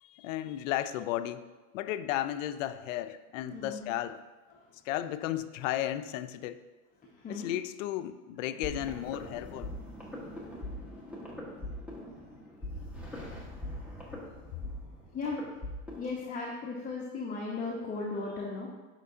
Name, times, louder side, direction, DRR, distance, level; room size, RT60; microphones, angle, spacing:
voice 1, 0.0-1.5 1.7-4.2 4.8-6.6 7.3-9.7, left 12 dB, 60° left, 12 dB, 0.5 m, -34 dB
voice 2, 3.5-3.9 4.5-4.7 7.0-7.5 10.3-10.4 15.1-15.4 16.0-18.7, left 3 dB, 20° left, -3 dB, 0.9 m, -37 dB
sound 1, 8.6-16.2, left 1 dB, 5° right, 1.3 m, -41 dB
9.0 x 5.8 x 2.7 m, 1.2 s
supercardioid pair, 135°, 43 cm